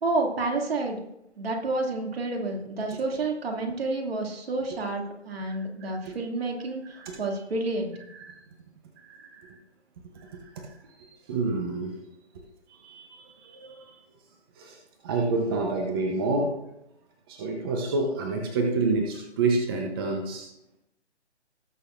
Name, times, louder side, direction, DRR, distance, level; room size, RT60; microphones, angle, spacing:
voice 1, 0.0-1.0 1.4-7.9, right 2 dB, 60° right, 1 dB, 2.6 m, -29 dB
voice 2, 5.4-5.9 6.9-7.2 8.1-8.4 9.0-9.6 10.1-10.7 11.3-11.9 12.7-14.0 14.6-14.8 15.0-16.6 17.3-20.5, right 3 dB, 20° right, 1 dB, 0.9 m, -29 dB
19.0 x 6.5 x 2.6 m, 0.84 s
hypercardioid pair, 155°, 34 cm